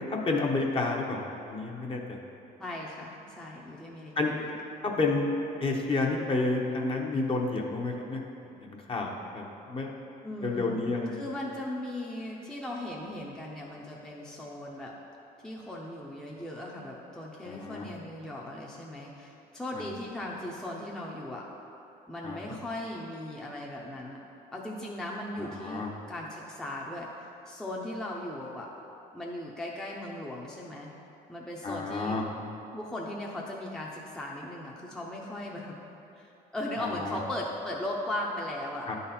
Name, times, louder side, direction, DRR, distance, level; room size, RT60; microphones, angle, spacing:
voice 1, 0.1-2.0 4.2-4.3 4.8-5.2 5.6-8.2 8.6-9.9 10.4-11.2 17.4-17.9 22.2-22.4 25.4-25.9 31.6-32.2 36.8-37.2 38.9-39.0, left 3 dB, 30° left, 0 dB, 0.9 m, -30 dB
voice 2, 2.6-4.5 10.2-10.8 11.1-15.0 15.4-21.5 22.1-24.2 24.5-28.7 29.1-30.9 31.3-32.2 32.7-35.8 36.2-38.9, left 1 dB, 5° left, -3 dB, 0.7 m, -38 dB
9.9 x 4.0 x 4.2 m, 2.8 s
cardioid pair, 110°, 17 cm